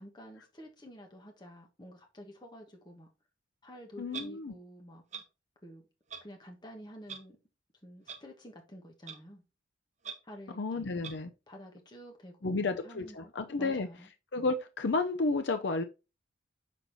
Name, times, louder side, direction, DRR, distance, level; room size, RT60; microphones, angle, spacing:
voice 1, 0.0-3.1 3.6-5.0 5.6-5.8 6.2-7.4 7.8-9.4 10.2-11.0 11.5-14.1, equal, 20° left, 1.3 m, -50 dB
voice 2, 4.0-4.5 10.5-11.3 12.4-13.9 14.3-15.8, left 3 dB, 60° left, 0.5 m, -31 dB
Clock, 4.1-4.3 5.1-5.2 6.1-6.2 7.1-7.2 8.1-8.2 9.1-9.2 10.0-10.1 11.0-11.1, right 7 dB, 35° right, 0.9 m, -41 dB
6.3 x 4.1 x 3.9 m
head